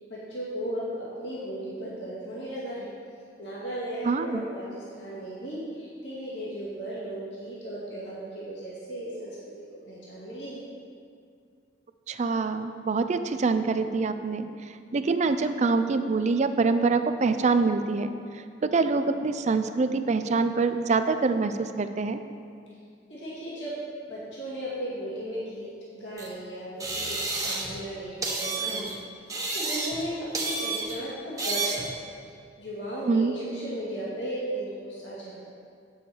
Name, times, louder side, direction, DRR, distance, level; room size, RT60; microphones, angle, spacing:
voice 1, 0.1-2.9 3.4-9.4 9.9-10.6 23.1-23.8 24.1-25.7 25.9-28.9 29.5-31.9 32.6-35.5, right 1 dB, 75° left, -8 dB, 2.1 m, -36 dB
voice 2, 4.0-4.4 12.1-14.5 14.9-18.1 18.6-22.2 33.1-33.3, right 4 dB, 40° right, 10 dB, 0.4 m, -25 dB
sound 1, 26.2-26.3 26.8-27.8 28.2-28.9 29.3-30.1 30.3-31.0 31.4-31.9, right 3 dB, 20° right, 1.0 m, -30 dB
8.6 x 7.2 x 4.5 m, 2.3 s
head